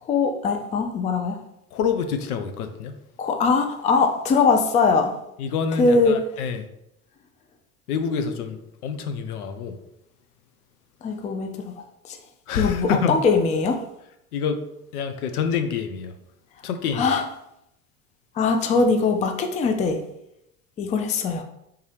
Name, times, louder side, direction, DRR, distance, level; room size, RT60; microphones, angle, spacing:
voice 1, 0.0-1.4 3.2-5.1 5.8-6.2 11.0-11.7 12.0-12.2 12.6-13.8 16.9-17.2 18.3-20.0 20.8-21.4, left 4 dB, 20° left, 0.3 m, -21 dB
voice 2, 1.7-3.0 5.4-6.7 7.9-9.8 12.5-13.2 14.3-14.7 14.9-16.1 16.6-17.0, left 6 dB, 80° left, 0.6 m, -27 dB
3.6 x 2.7 x 3.3 m
hypercardioid pair, 75°, 44 cm